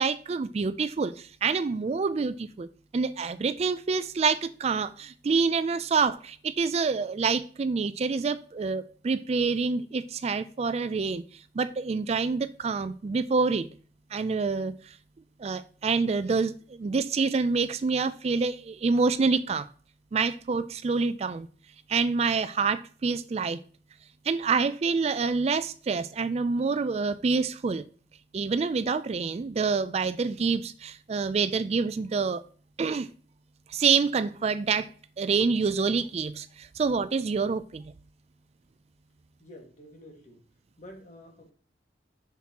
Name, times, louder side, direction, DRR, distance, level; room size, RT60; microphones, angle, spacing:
voice 1, 0.0-2.7 2.9-13.7 14.1-15.0 15.4-19.7 20.1-21.5 21.9-23.6 24.2-27.8 28.3-32.4 32.8-33.1 33.7-34.9 35.2-37.8, right 4 dB, 35° right, 0.3 m, -27 dB
voice 2, 39.4-40.4 40.8-41.5, left 1 dB, 45° left, 1.8 m, -49 dB
7.2 x 5.9 x 2.9 m
head